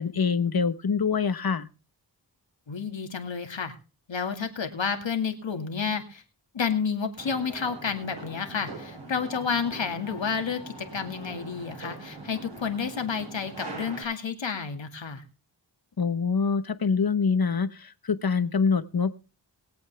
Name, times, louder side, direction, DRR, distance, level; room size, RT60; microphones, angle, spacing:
voice 1, 0.0-1.7 16.0-19.1, left 5 dB, 55° left, 14 dB, 1.1 m, -25 dB
voice 2, 2.7-3.7 4.1-6.2 6.5-15.2, left 6 dB, 85° left, 5 dB, 2.3 m, -30 dB
sound 1, 7.2-14.0, right 2 dB, 65° right, 7.1 m, -42 dB
21.5 x 8.2 x 3.4 m, 0.33 s
wide cardioid pair, 55°, 44 cm